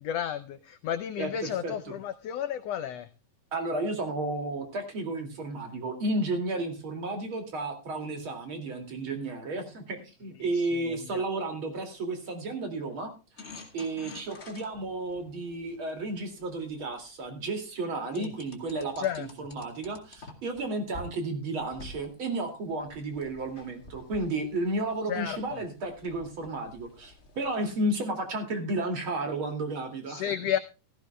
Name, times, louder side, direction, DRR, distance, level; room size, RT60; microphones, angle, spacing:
voice 1, 0.0-3.1 10.5-10.8 11.1-11.2 18.1-18.3 19.0-19.3 25.1-25.6 30.1-30.6, left 9 dB, 90° left, 10 dB, 1.4 m, -32 dB
voice 2, 1.2-1.9 3.5-13.1 13.7-30.2, right 2 dB, 40° right, 5 dB, 2.9 m, -32 dB
sound 1, 13.4-17.3 18.1-20.6 20.9-21.1 21.6-27.7, left 2 dB, 25° left, 1.6 m, -49 dB
16.5 x 14.5 x 2.2 m, 0.31 s
omnidirectional pair, 3.7 m